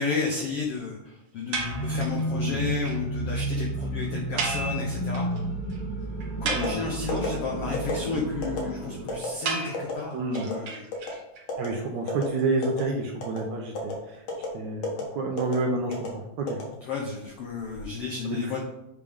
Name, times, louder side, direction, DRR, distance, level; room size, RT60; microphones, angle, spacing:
voice 1, 0.0-5.3 6.4-10.8 16.8-18.6, left 4 dB, 80° left, 0 dB, 1.3 m, -32 dB
sound 1, 1.5-9.2, right 1 dB, 15° left, 1.9 m, -31 dB
sound 2, 1.5-2.2 2.6-2.7 2.9-3.0 3.3-3.4 3.5-3.7 4.4-5.4 5.7-5.8 6.2-7.2 9.5-11.4, right 3 dB, 55° right, 1.8 m, -33 dB
voice 2, 2.3-2.6 6.5-6.8 10.1-10.5 11.6-14.2 14.5-16.6 18.2-18.6, right 3 dB, 75° right, 1 dB, 1.8 m, -29 dB
sound 3, 6.5-6.7 7.1-7.3 7.7-8.0 8.4-8.6 9.1-9.3 9.7-9.9 10.3-10.5 10.9-11.1 11.5-11.7 12.1-12.2 12.6-12.9 13.2-13.4 13.7-13.9 14.3-14.5 14.8-15.0 15.4-15.6 15.9-16.1 16.5-17.1 17.5-17.8, left 5 dB, 55° left, 2.3 m, -31 dB
8.2 x 3.5 x 5.2 m, 0.89 s
omnidirectional pair, 4.0 m